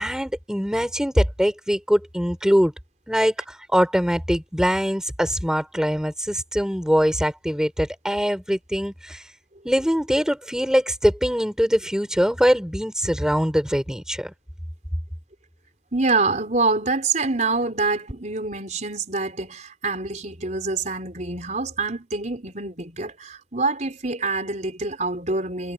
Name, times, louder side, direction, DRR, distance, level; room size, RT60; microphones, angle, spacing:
voice 1, 0.0-2.7 3.1-9.2 9.6-14.3, equal, 5° right, 5.8 m, -22 dB
voice 2, 15.9-25.7, right 3 dB, 40° right, 5.1 m, -26 dB
head